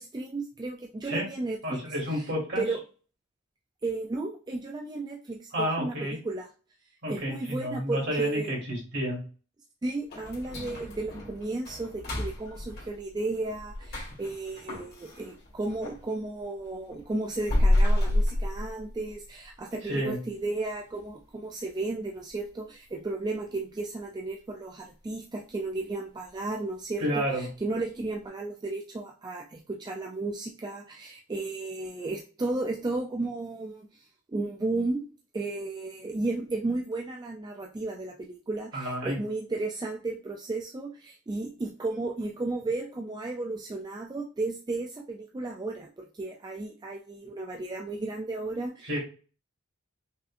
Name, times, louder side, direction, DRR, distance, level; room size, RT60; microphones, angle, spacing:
voice 1, 0.0-1.8 2.1-2.3 2.6-2.8 3.8-6.5 7.1-8.5 9.8-35.1 35.3-48.9, right 2 dB, 20° right, 2 dB, 0.3 m, -34 dB
voice 2, 1.6-2.6 5.5-6.2 7.0-9.2 19.8-20.2 27.0-27.5 38.7-39.2 48.8-49.0, equal, 55° right, -3 dB, 2.1 m, -30 dB
sound 1, 10.1-16.0 16.4-19.3 19.6-19.7 20.2-20.3 20.8-21.2 21.5-21.6 22.1-22.2, left 1 dB, 50° left, 1.7 m, -29 dB
5.4 x 2.6 x 2.5 m, 0.37 s
head